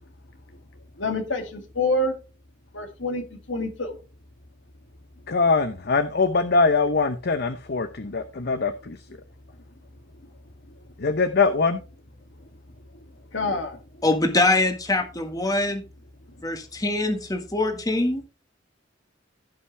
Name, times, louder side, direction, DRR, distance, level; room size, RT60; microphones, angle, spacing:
voice 1, 1.0-2.1 2.7-4.0 13.3-13.8, left 2 dB, 80° left, 4 dB, 2.4 m, -27 dB
voice 2, 5.3-8.7 11.0-11.8, left 4 dB, 55° left, 10 dB, 0.8 m, -22 dB
voice 3, 14.0-15.8 16.4-18.2, left 2 dB, 20° left, 6 dB, 1.6 m, -23 dB
16.0 x 5.7 x 3.3 m, 0.31 s
head